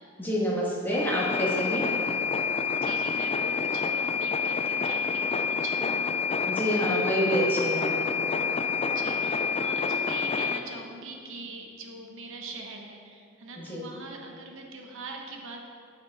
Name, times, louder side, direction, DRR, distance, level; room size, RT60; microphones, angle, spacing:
voice 1, 0.2-1.9 6.4-8.0 13.7-13.8, equal, 10° left, -5 dB, 1.7 m, -27 dB
sound 1, 0.9-10.6, left 5 dB, 30° left, 0.4 m, -28 dB
voice 2, 2.7-6.1 8.8-15.7, right 3 dB, 65° right, 1 dB, 1.1 m, -42 dB
9.5 x 8.9 x 3.6 m, 2.4 s
head